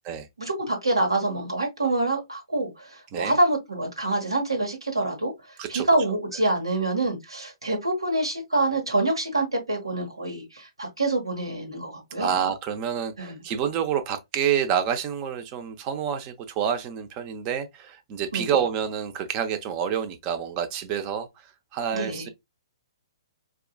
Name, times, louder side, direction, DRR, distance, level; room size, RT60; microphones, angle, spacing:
voice 1, 0.4-5.3 5.7-12.4 13.2-13.4 18.3-18.5 21.9-22.3, right 2 dB, 85° right, 1.3 m, -26 dB
voice 2, 12.2-21.3 21.7-22.3, right 8 dB, 30° right, 0.7 m, -28 dB
4.7 x 2.4 x 2.3 m
figure-of-eight pair, 125°, 3 cm